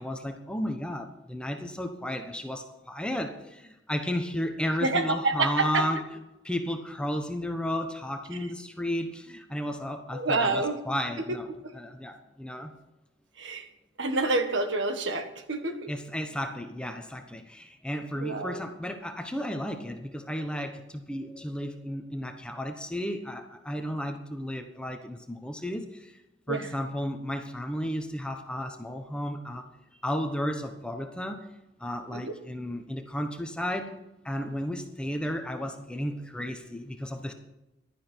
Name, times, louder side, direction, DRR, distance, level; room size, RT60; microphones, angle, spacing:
voice 1, 0.0-6.0 6.4-12.7 15.9-26.2 26.5-29.7 30.0-31.5 31.8-33.9 34.2-37.3, equal, 5° left, 5 dB, 1.0 m, -33 dB
voice 2, 4.8-5.8 10.1-10.8 11.3-11.4 11.6-11.7 13.4-13.7 14.0-15.9 18.1-18.6 26.5-26.7 32.1-32.3, right 3 dB, 70° right, 7 dB, 1.6 m, -28 dB
15.5 x 12.0 x 4.5 m, 0.95 s
head